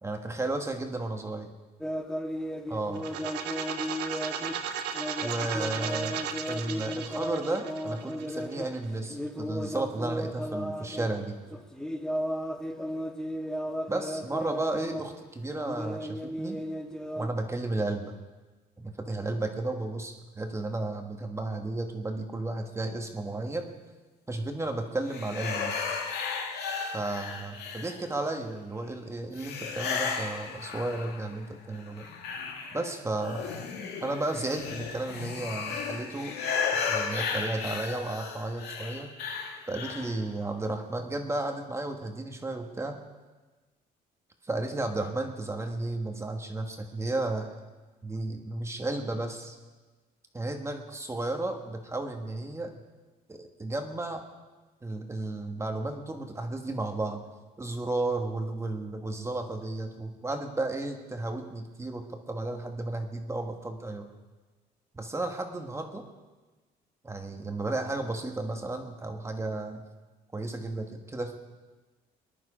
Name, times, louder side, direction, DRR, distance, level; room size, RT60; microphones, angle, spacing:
voice 1, 0.0-1.5 2.7-3.1 5.2-6.2 6.5-11.4 13.9-16.6 17.1-18.1 18.8-23.7 24.3-25.7 26.9-32.1 32.7-33.5 34.0-36.4 36.7-39.1 39.7-43.0 44.4-47.5 48.0-49.6 50.3-52.8 53.3-54.2 54.8-57.2 57.6-64.1 64.9-66.0 67.0-69.8 70.3-71.3, right 2 dB, 15° right, 4 dB, 1.4 m, -33 dB
sound 1, 1.8-11.2 11.5-15.2 15.5-17.3, equal, 5° left, 1.2 m, -35 dB
sound 2, 2.9-8.7, right 7 dB, 85° right, 1.3 m, -36 dB
sound 3, 25.1-28.3 29.4-31.4 31.7-40.2, left 5 dB, 80° left, 2.0 m, -34 dB
20.5 x 11.0 x 5.0 m, 1.3 s
cardioid pair, 110°, 17 cm